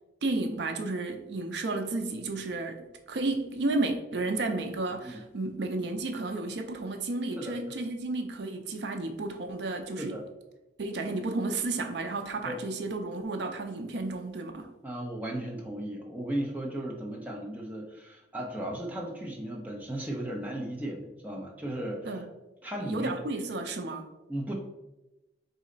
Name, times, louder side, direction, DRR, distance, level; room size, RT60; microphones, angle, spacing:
voice 1, 0.2-10.2 10.8-14.7 22.0-22.3 22.9-24.1, right 2 dB, 65° right, 6 dB, 0.5 m, -32 dB
voice 2, 14.8-22.1 22.6-23.2 24.3-24.5, right 1 dB, 10° right, -1 dB, 0.6 m, -35 dB
4.1 x 3.1 x 3.8 m, 1.0 s
head